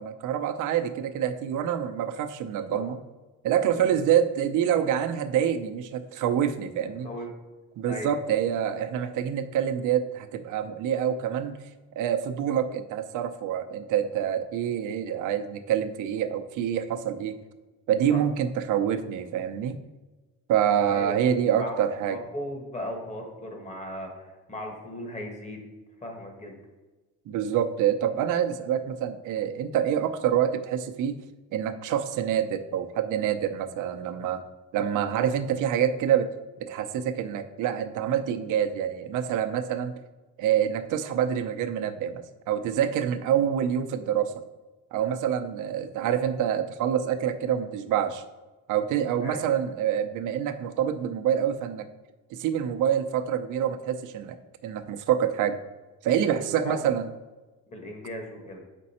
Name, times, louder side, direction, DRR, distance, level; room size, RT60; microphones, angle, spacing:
voice 1, 0.0-3.0 3.4-7.1 7.8-11.6 12.0-17.4 17.9-19.8 20.5-22.2 27.3-31.2 31.5-34.4 34.7-36.3 36.6-39.9 40.4-44.3 44.9-48.2 48.7-51.9 52.3-54.4 54.6-55.6 56.0-57.1, right 9 dB, 80° right, 8 dB, 0.7 m, -26 dB
voice 2, 20.9-21.3 21.6-21.7 22.1-25.7 26.0-26.5 49.2-49.5 56.6-56.9 57.7-58.6, left 1 dB, 25° left, 2 dB, 1.4 m, -37 dB
7.4 x 5.3 x 4.2 m, 1.2 s
cardioid pair, 150°, 30 cm